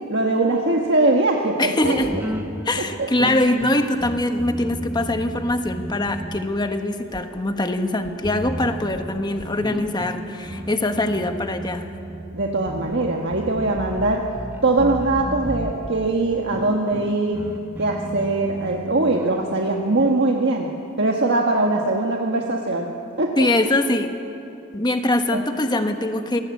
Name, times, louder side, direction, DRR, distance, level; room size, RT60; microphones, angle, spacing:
voice 1, 0.1-2.0 3.0-3.1 12.3-14.2 14.6-17.4 17.8-20.7 21.0-22.9 23.2-23.5 25.3-25.4, right 2 dB, 55° right, 1 dB, 1.5 m, -21 dB
voice 2, 1.6-2.1 2.6-11.9 23.4-24.1 24.7-26.4, left 1 dB, 20° left, 6 dB, 1.3 m, -23 dB
sound 1, 1.8-6.8 7.1-7.2 8.0-20.1, right 1 dB, 10° right, 0.9 m, -34 dB
25.0 x 19.0 x 8.5 m, 2.8 s
head